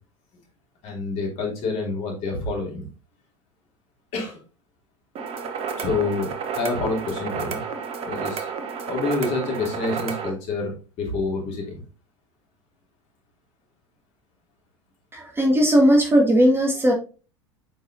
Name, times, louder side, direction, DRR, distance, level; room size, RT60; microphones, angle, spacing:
voice 1, 0.8-2.8 4.1-4.4 5.8-7.6 8.1-8.5 8.9-10.7 11.0-11.8, left 3 dB, 45° left, -1 dB, 3.0 m, -27 dB
sound 1, 5.2-10.3, right 6 dB, 40° right, 1.0 m, -31 dB
voice 2, 15.1-16.9, equal, 15° right, 0 dB, 1.7 m, -17 dB
8.0 x 4.8 x 2.6 m, 0.34 s
figure-of-eight pair, 75°, 16 cm